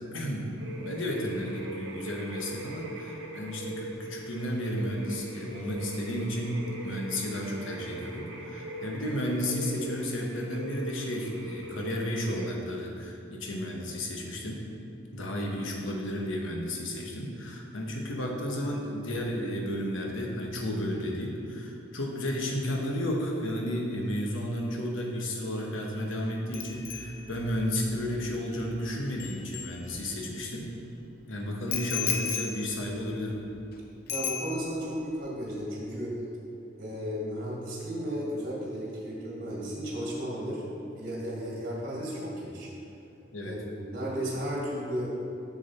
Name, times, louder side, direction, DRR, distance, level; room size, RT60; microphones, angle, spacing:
voice 1, 0.0-14.6 15.1-30.7 31.3-33.4 43.3-43.6, equal, 80° left, 0 dB, 1.1 m, -33 dB
sound 1, 0.6-12.5, right 2 dB, 65° right, 1.1 m, -41 dB
Bicycle bell, 26.5-30.4 31.7-33.7 34.1-35.0 35.2-35.5, left 7 dB, 50° left, 0.6 m, -36 dB
voice 2, 34.1-36.2 36.8-40.7 40.9-42.7 43.4-45.1, equal, 45° right, -4 dB, 1.7 m, -34 dB
6.6 x 6.3 x 4.1 m, 2.8 s
head